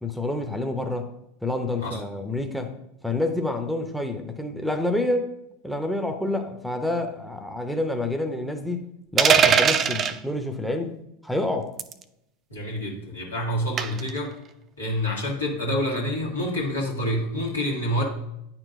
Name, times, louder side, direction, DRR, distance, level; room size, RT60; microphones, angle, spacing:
voice 1, 0.0-1.1 1.4-2.7 3.0-5.3 5.6-8.8 9.1-10.9 11.2-11.7, left 2 dB, ahead, 7 dB, 0.7 m, -28 dB
sound 1, 9.2-10.2 11.8-12.0 13.8-14.1, right 7 dB, 30° right, 0.4 m, -19 dB
voice 2, 12.5-14.3 14.8-18.0, equal, 90° left, -3 dB, 1.8 m, -27 dB
9.5 x 4.4 x 2.6 m, 0.83 s
hypercardioid pair, 90°, 0 cm